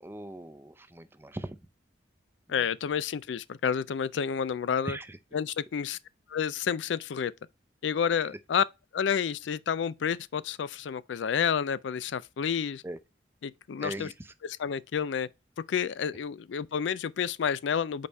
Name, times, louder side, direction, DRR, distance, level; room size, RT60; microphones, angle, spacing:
voice 1, 0.0-1.6 2.5-2.7 2.9-3.0 4.8-5.2 8.1-8.3 12.8-13.0 13.8-14.3, right 1 dB, 15° right, 0.5 m, -40 dB
voice 2, 2.5-5.0 5.3-6.0 6.3-7.3 7.8-8.6 8.9-12.8 13.4-14.1 14.6-15.3 15.7-18.1, left 7 dB, 85° left, 0.4 m, -29 dB
5.2 x 4.2 x 4.5 m
head